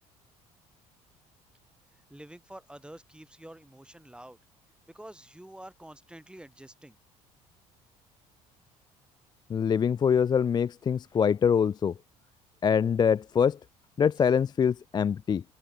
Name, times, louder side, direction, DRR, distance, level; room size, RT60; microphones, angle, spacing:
voice 1, 1.9-4.4 4.9-7.0 14.1-14.3, right 1 dB, 5° right, 4.1 m, -48 dB
voice 2, 9.5-11.9 12.6-13.6 14.0-15.4, left 7 dB, 25° left, 0.4 m, -24 dB
figure-of-eight pair, 55°, 19 cm